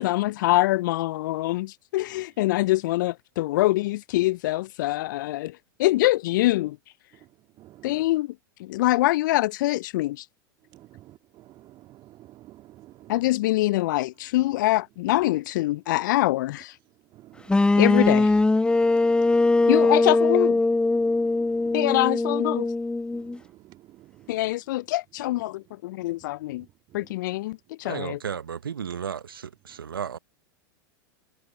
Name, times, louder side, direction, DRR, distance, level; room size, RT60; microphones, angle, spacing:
voice 1, 0.0-6.8 7.8-8.3 8.6-10.2 13.1-16.7 17.8-18.3 19.7-20.6 21.7-22.7 24.3-26.6 26.9-28.2, left 17 dB, 60° left, 0.5 m, -24 dB
voice 2, 7.1-8.1 10.7-13.3 14.4-14.5 15.1-15.3 16.9-18.0 18.6-20.0 21.0-22.0 23.1-24.6 25.2-25.6 26.0-26.1 26.6-27.2 29.7-29.8, right 15 dB, 40° right, 2.0 m, -51 dB
sound 1, 17.5-23.4, left 2 dB, 10° left, 1.5 m, -21 dB
voice 3, 27.8-30.2, right 7 dB, 80° right, 0.9 m, -34 dB
hypercardioid pair, 95°, 11 cm